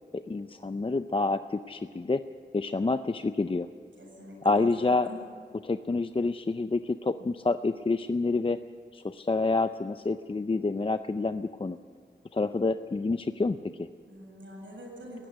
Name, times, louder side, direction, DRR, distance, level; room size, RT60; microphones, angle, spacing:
voice 1, 0.1-2.2 2.5-3.7 4.4-5.1 5.6-8.6 8.9-11.8 12.3-13.9, left 3 dB, 30° left, 10 dB, 0.5 m, -28 dB
voice 2, 4.0-4.5 4.8-5.2 14.1-15.3, equal, 90° right, -1 dB, 7.6 m, -45 dB
19.5 x 15.0 x 9.6 m, 2.1 s
wide cardioid pair, 100°, 19 cm